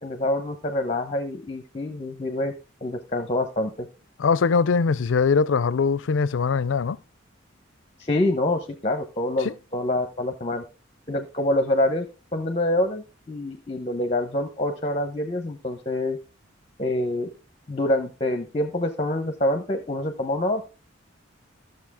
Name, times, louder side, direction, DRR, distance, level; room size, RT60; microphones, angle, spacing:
voice 1, 0.0-2.5 2.8-3.9 8.0-10.6 11.1-12.1 12.3-16.2 16.8-17.3 17.7-20.6, left 1 dB, 30° left, 0.8 m, -26 dB
voice 2, 4.2-7.0 9.4-9.5, left 5 dB, 75° left, 0.4 m, -21 dB
13.0 x 6.7 x 3.5 m
head